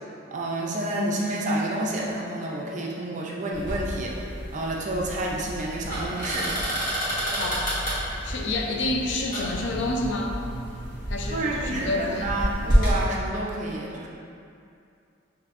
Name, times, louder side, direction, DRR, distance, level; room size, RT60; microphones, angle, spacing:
voice 1, 0.3-6.6 11.3-14.1, right 1 dB, 40° right, -3 dB, 0.5 m, -29 dB
sound 1, 3.5-13.0, equal, 45° left, 1.3 m, -29 dB
voice 2, 8.2-10.4 11.1-12.3, left 2 dB, 70° left, 1 dB, 0.5 m, -29 dB
6.8 x 2.6 x 2.5 m, 2.5 s
head